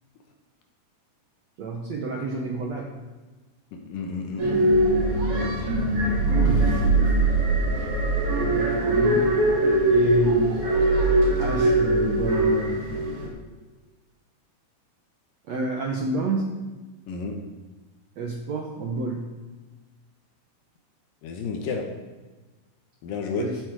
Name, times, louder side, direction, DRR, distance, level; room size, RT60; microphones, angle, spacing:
voice 1, 1.6-2.9 5.3-5.6 6.3-6.9 8.5-9.3 9.8-10.6 11.4-12.8 15.5-16.5 18.2-19.3 21.6-21.8 23.3-23.6, right 3 dB, 85° right, 0 dB, 1.5 m, -29 dB
voice 2, 3.7-4.5 17.1-17.4 21.2-21.8 23.0-23.5, left 5 dB, 70° left, 3 dB, 2.3 m, -31 dB
sound 1, 4.4-13.3, right 2 dB, 45° right, 3.8 m, -21 dB
15.5 x 8.4 x 4.8 m, 1.2 s
omnidirectional pair, 4.9 m